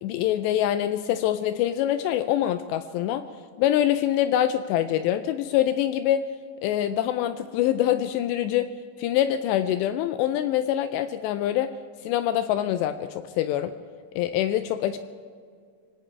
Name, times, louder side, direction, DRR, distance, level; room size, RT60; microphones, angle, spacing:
voice 1, 0.0-3.2 3.6-6.2 6.6-8.7 9.0-11.7 12.0-13.7 14.2-15.0, left 11 dB, 85° left, 10 dB, 2.7 m, -25 dB
24.5 x 17.0 x 3.3 m, 2.1 s
omnidirectional pair, 5.1 m